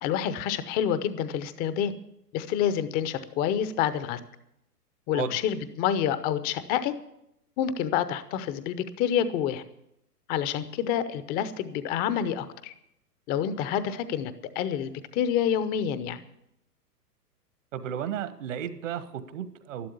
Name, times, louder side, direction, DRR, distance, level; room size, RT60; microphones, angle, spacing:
voice 1, 0.0-1.9 2.3-4.2 5.1-6.9 7.6-9.6 10.3-12.7 13.3-16.2, left 9 dB, 20° left, 13 dB, 0.7 m, -28 dB
voice 2, 17.7-19.9, right 9 dB, 50° right, 12 dB, 1.4 m, -33 dB
12.5 x 12.0 x 6.9 m, 0.79 s
figure-of-eight pair, 115°, 47 cm